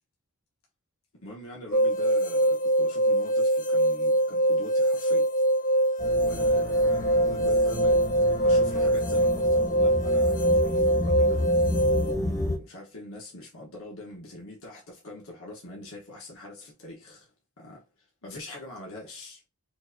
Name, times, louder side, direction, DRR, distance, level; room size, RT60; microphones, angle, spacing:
voice 1, 1.1-5.3 6.2-8.0 8.4-17.3 17.6-17.8 18.2-19.4, left 1 dB, 70° left, 1.2 m, -43 dB
sound 1, 1.7-12.1, right 1 dB, 40° left, 0.6 m, -23 dB
sound 2, 6.0-12.6, left 1 dB, 15° left, 0.8 m, -31 dB
4.6 x 2.7 x 2.7 m
head